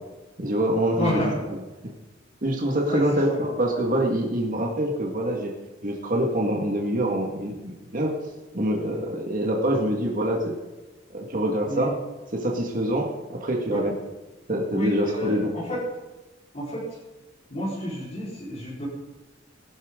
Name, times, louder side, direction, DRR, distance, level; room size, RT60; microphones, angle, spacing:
voice 1, 0.4-1.3 2.4-5.5 5.8-8.1 8.5-10.5 11.1-11.9 12.3-13.9 14.5-15.5, right 1 dB, 45° right, 0 dB, 1.8 m, -25 dB
voice 2, 1.0-1.4 2.9-3.4 8.9-9.0 11.7-11.9 13.7-13.8 14.7-15.8 16.5-17.0 17.5-18.9, equal, 40° left, -10 dB, 4.5 m, -30 dB
19.5 x 11.5 x 3.8 m, 1.2 s
head